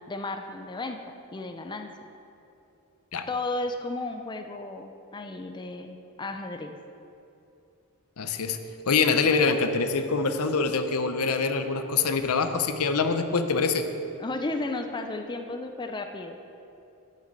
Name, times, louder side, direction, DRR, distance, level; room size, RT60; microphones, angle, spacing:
voice 1, 0.1-1.0 1.3-1.9 3.3-6.7 14.2-16.4, left 2 dB, 20° left, 5 dB, 0.5 m, -34 dB
voice 2, 8.2-8.6 8.9-13.8, left 4 dB, 75° left, 8 dB, 0.7 m, -25 dB
9.4 x 6.6 x 7.4 m, 2.8 s
head